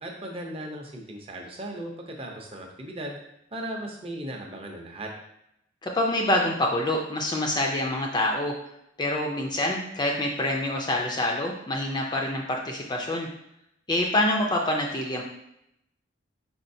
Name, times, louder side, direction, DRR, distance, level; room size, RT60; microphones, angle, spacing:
voice 1, 0.0-3.2 3.5-5.1, right 1 dB, 30° right, 1 dB, 0.6 m, -37 dB
voice 2, 5.8-8.5 9.0-13.3 13.9-15.2, left 1 dB, 20° left, 0 dB, 0.4 m, -26 dB
4.6 x 4.3 x 2.7 m, 0.79 s
head